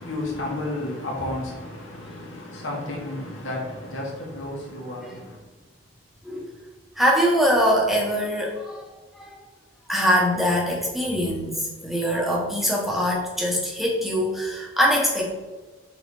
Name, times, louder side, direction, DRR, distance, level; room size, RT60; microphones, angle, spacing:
voice 1, 0.0-5.4, left 1 dB, 75° left, 1.9 m, -32 dB
voice 2, 7.0-8.9 9.1-9.4 9.9-15.3, equal, ahead, 1.1 m, -23 dB
6.3 x 4.3 x 3.7 m
head